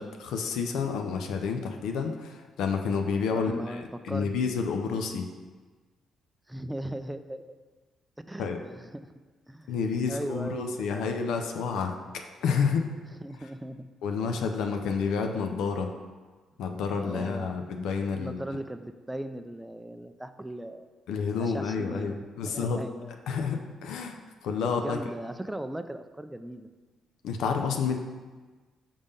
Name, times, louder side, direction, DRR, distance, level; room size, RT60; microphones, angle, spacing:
voice 1, 0.0-5.3 8.4-8.6 9.7-12.0 12.4-12.9 14.0-15.9 16.6-18.4 21.1-22.8 23.3-25.0 27.2-27.9, left 5 dB, 75° left, 4 dB, 0.5 m, -29 dB
voice 2, 3.3-4.3 6.5-7.6 8.3-9.1 9.5-9.7 10.1-10.7 10.9-11.0 13.2-13.9 17.0-17.6 18.1-20.9 21.3-22.2 22.4-23.1 24.8-26.7, right 1 dB, 10° right, 10 dB, 0.4 m, -38 dB
5.2 x 3.5 x 5.4 m, 1.4 s
hypercardioid pair, 50°, 0 cm